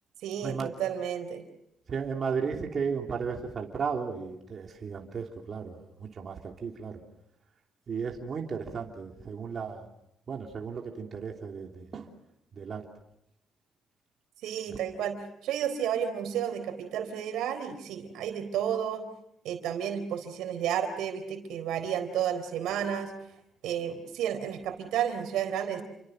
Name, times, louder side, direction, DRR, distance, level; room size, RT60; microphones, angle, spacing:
voice 1, 0.2-1.4 14.4-15.2 15.4-19.0 19.4-23.1 23.6-25.8, right 9 dB, 90° right, 7 dB, 4.0 m, -31 dB
voice 2, 1.9-7.0 7.9-9.9 10.3-12.1 12.5-12.8, right 6 dB, 50° right, 1 dB, 3.0 m, -34 dB
29.5 x 24.5 x 6.5 m, 0.81 s
cardioid pair, 90°, 0 cm